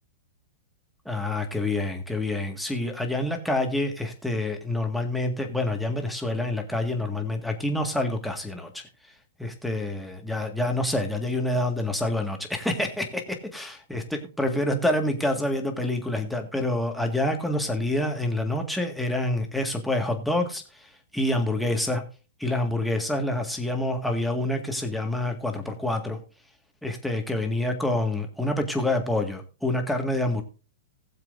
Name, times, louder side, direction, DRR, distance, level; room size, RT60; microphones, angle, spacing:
voice 1, 1.1-8.9 9.4-22.0 22.4-26.2 26.8-30.4, left 1 dB, ahead, 2 dB, 1.8 m, -27 dB
20.0 x 7.5 x 2.6 m, 0.34 s
hypercardioid pair, 155°, 0 cm